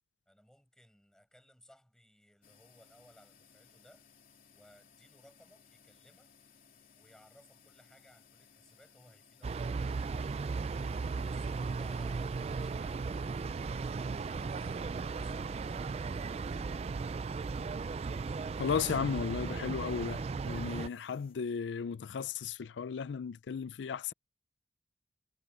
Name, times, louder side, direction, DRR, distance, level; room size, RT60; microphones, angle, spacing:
voice 1, 0.3-4.1 4.5-6.3 6.9-10.6 11.2-14.5 15.0-17.5, equal, 5° left, 5.6 m, -62 dB
sound 1, 2.4-21.3, left 6 dB, 50° left, 2.9 m, -63 dB
sound 2, 9.4-20.9, right 4 dB, 35° right, 0.3 m, -36 dB
voice 2, 18.6-24.1, left 6 dB, 85° left, 0.4 m, -35 dB
head